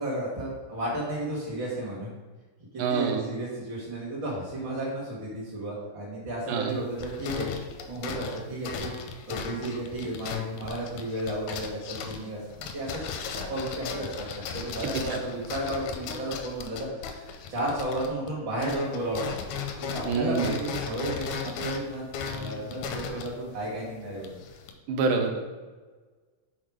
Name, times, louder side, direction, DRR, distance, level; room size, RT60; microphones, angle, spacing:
voice 1, 0.0-2.1 2.7-7.5 7.9-8.9 9.3-13.0 13.5-19.3 19.8-22.0 22.3-24.4, right 1 dB, 50° right, -5 dB, 1.4 m, -33 dB
voice 2, 2.8-3.2 6.5-6.7 15.1-15.2 20.1-20.5 24.9-25.4, right 5 dB, 75° right, 5 dB, 2.1 m, -26 dB
sound 1, 6.7-18.3 18.6-24.7, left 6 dB, 80° left, 1.8 m, -37 dB
6.6 x 3.7 x 4.8 m, 1.3 s
omnidirectional pair, 3.8 m